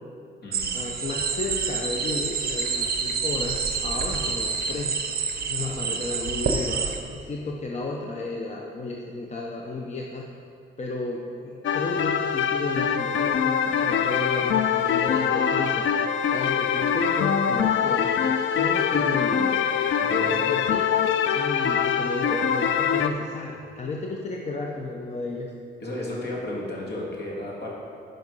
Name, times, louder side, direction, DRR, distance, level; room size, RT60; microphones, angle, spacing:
sound 1, 0.5-7.0, right 5 dB, 50° right, 0.8 m, -28 dB
voice 1, 0.7-5.0 5.5-10.2 10.8-19.6 20.2-20.9 21.3-25.5, left 2 dB, 35° left, 0 dB, 0.7 m, -33 dB
voice 2, 5.6-5.9 20.0-20.5 25.8-27.7, left 1 dB, 55° left, -4 dB, 2.3 m, -33 dB
sound 2, 11.6-23.1, left 8 dB, 80° left, 0.5 m, -23 dB
11.0 x 5.3 x 5.4 m, 2.6 s
wide cardioid pair, 135°, 20 cm